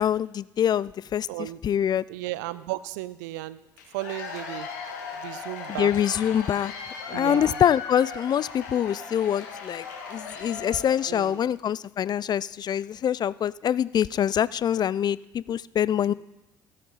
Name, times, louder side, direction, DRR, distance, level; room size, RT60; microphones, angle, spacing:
voice 1, 0.0-2.0 5.7-6.7 7.1-16.1, left 9 dB, 45° left, 21 dB, 0.4 m, -25 dB
voice 2, 1.3-1.6 2.1-3.6 3.9-4.7 5.1-5.9 7.1-7.6 11.1-11.6 16.1-16.2, right 17 dB, 80° right, 17 dB, 0.4 m, -34 dB
Cheering / Applause / Crowd, 3.8-11.4, left 5 dB, 85° left, 1.5 m, -38 dB
18.5 x 6.5 x 4.0 m, 0.93 s
hypercardioid pair, 50°, 10 cm